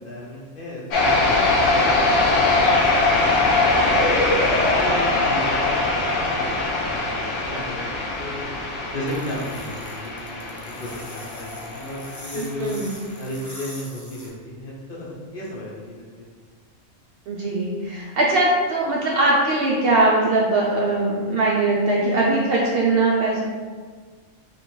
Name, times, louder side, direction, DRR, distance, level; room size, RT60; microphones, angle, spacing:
voice 1, 0.0-3.5 3.7-4.0 4.6-8.4 8.9-12.7 13.2-16.0, left 1 dB, 50° left, -4 dB, 0.8 m, -35 dB
sound 1, 0.9-12.4, left 2 dB, 70° left, 1.0 m, -21 dB
sound 2, 9.1-14.3, left 1 dB, 30° left, 0.3 m, -42 dB
voice 2, 12.6-13.0 17.3-23.4, right 2 dB, 60° right, -3 dB, 0.6 m, -20 dB
3.0 x 2.9 x 4.3 m, 1.5 s
omnidirectional pair, 1.4 m